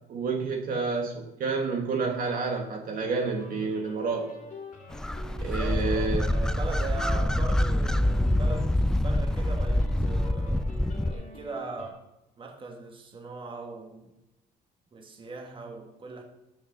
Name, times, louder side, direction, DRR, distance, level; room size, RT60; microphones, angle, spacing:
voice 1, 0.1-4.3 5.4-6.2, right 4 dB, 55° right, 1.4 m, -29 dB
sound 1, 3.0-11.9, left 2 dB, 45° left, 2.1 m, -46 dB
sound 2, 4.9-11.1, left 1 dB, 5° left, 0.3 m, -26 dB
voice 2, 5.3-10.8 11.1-12.0 12.4-14.1 14.9-16.2, right 3 dB, 30° right, 1.7 m, -40 dB
6.4 x 6.1 x 6.5 m
cardioid pair, 110°, 17 cm